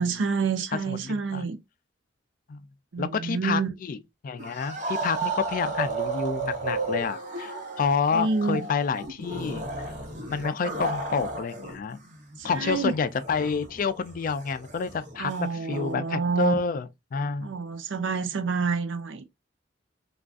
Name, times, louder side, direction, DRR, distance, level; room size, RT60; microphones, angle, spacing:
voice 1, 0.0-1.6 2.9-3.7 8.1-8.7 12.4-12.9 15.2-16.6 17.4-19.2, right 4 dB, 85° right, 0.6 m, -28 dB
voice 2, 0.7-1.4 2.5-2.6 3.0-4.0 4.2-9.6 10.3-12.0 12.4-17.5, left 5 dB, 45° left, 0.3 m, -29 dB
sound 1, 4.4-11.8 12.0-15.9, right 3 dB, 45° right, 0.9 m, -34 dB
3.5 x 2.4 x 2.4 m
head